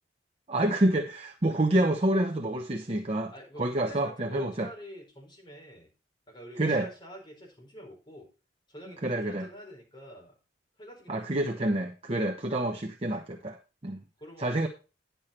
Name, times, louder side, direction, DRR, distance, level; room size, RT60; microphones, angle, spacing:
voice 1, 0.5-3.3 3.6-4.7 6.6-6.9 9.0-9.5 11.1-13.6 13.8-14.0 14.4-14.7, right 1 dB, 35° right, 4 dB, 0.9 m, -27 dB
voice 2, 3.3-5.9 6.3-8.3 8.7-10.4 10.8-11.8 13.4-13.5 14.2-14.7, equal, 25° left, -1 dB, 4.6 m, -47 dB
10.5 x 6.9 x 4.3 m, 0.32 s
head